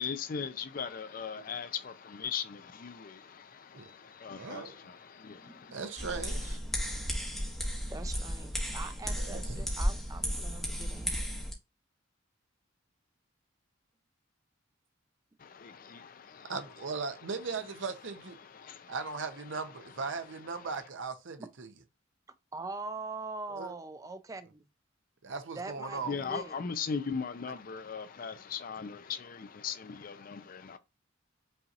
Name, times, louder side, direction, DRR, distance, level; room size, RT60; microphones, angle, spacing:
voice 1, 0.0-5.8 15.4-16.5 18.4-18.9 26.0-30.8, left 6 dB, 45° left, 0.4 m, -39 dB
voice 2, 4.3-4.8 5.7-6.6 9.2-9.7 16.5-18.4 18.9-21.7 23.5-23.7 25.2-26.2, right 4 dB, 70° right, 0.7 m, -38 dB
sound 1, 6.0-11.5, equal, ahead, 1.0 m, -34 dB
voice 3, 7.9-11.1 21.4-21.5 22.5-24.6 25.6-26.6, right 3 dB, 15° right, 0.3 m, -42 dB
5.5 x 2.8 x 2.4 m
head